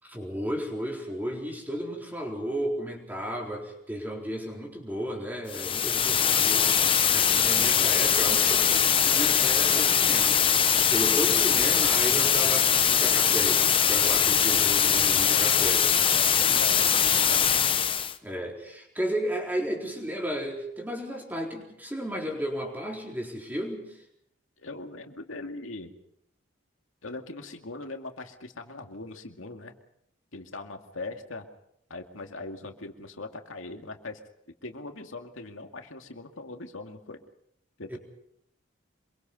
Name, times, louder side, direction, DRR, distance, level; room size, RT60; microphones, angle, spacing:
voice 1, 0.0-10.4 10.8-16.0 18.2-24.0 37.9-38.0, equal, 10° right, 0 dB, 4.1 m, -33 dB
sound 1, 5.5-18.2, left 8 dB, 25° left, 0.9 m, -22 dB
voice 2, 15.2-15.6 16.1-17.5 24.6-25.9 27.0-29.7 30.3-31.5 31.9-34.2 34.6-37.2 37.8-38.0, left 2 dB, 85° left, 4 dB, 2.3 m, -40 dB
26.0 x 23.0 x 5.4 m, 0.74 s
head